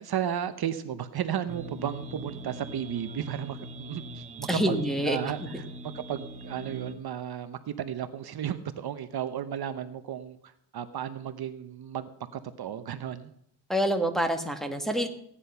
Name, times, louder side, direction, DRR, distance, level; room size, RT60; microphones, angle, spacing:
voice 1, 0.0-4.8 5.1-5.7 5.9-13.3, right 9 dB, 55° right, 10 dB, 0.9 m, -34 dB
sound 1, 1.5-6.9, right 2 dB, 15° right, 1.4 m, -42 dB
voice 2, 4.5-5.2 5.5-5.6 13.7-15.1, equal, ahead, 3 dB, 1.6 m, -27 dB
16.0 x 10.0 x 5.6 m, 0.71 s
cardioid pair, 120°, 45 cm